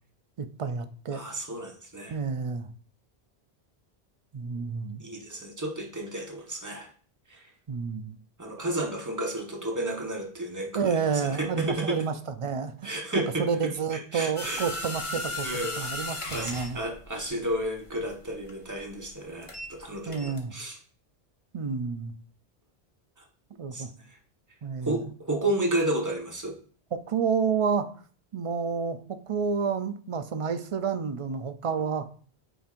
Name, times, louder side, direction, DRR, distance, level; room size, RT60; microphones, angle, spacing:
voice 1, 0.4-1.2 2.1-2.7 4.3-5.0 7.7-8.2 10.7-12.1 12.4-13.0 13.4-15.5 15.8-16.8 20.1-20.5 21.5-22.1 23.6-23.9 24.6-25.0 26.9-27.9 28.3-32.1, right 6 dB, 45° right, 10 dB, 0.4 m, -29 dB
voice 2, 1.1-2.1 5.0-6.9 7.3-7.5 8.4-10.9 11.4-12.0 12.8-14.6 15.4-15.8 16.3-20.8 23.7-24.2 24.8-26.6, right 1 dB, 20° right, 0 dB, 1.2 m, -32 dB
sound 1, 14.4-19.8 20.1-20.4, left 2 dB, 30° left, 1.0 m, -36 dB
9.1 x 4.4 x 2.5 m, 0.43 s
omnidirectional pair, 1.1 m